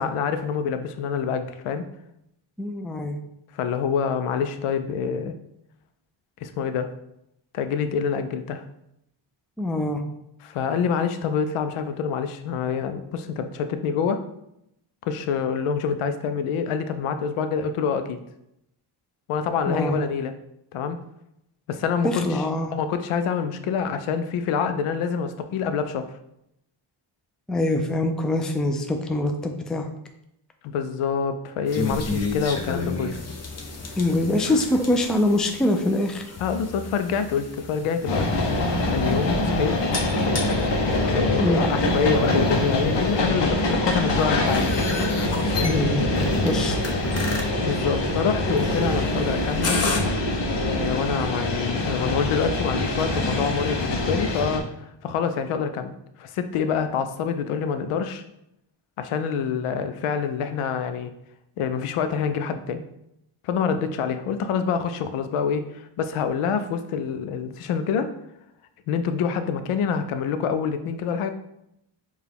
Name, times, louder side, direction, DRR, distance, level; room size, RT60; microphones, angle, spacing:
voice 1, 0.0-1.8 3.5-5.3 6.4-6.9 7.5-8.6 10.4-14.2 15.0-18.2 19.3-20.3 20.7-21.0 21.7-22.4 22.7-26.1 30.6-33.2 34.4-34.6 36.4-38.3 38.9-40.0 41.0-44.8 45.6-45.8 47.6-49.9 50.6-55.9 56.2-58.2 59.0-61.1 61.6-62.8 63.4-68.1 68.9-71.3, left 6 dB, 85° left, 9 dB, 0.6 m, -26 dB
voice 2, 2.6-3.2 9.6-10.0 19.7-20.0 22.0-22.7 27.5-29.9 34.0-36.2 41.4-41.6 45.6-46.8, left 1 dB, ahead, 5 dB, 0.3 m, -24 dB
sound 1, 31.7-50.0, left 3 dB, 30° left, 0.7 m, -34 dB
sound 2, 38.1-54.6, left 1 dB, 60° left, 0.9 m, -24 dB
4.6 x 2.4 x 3.4 m, 0.79 s
cardioid pair, 75°, 49 cm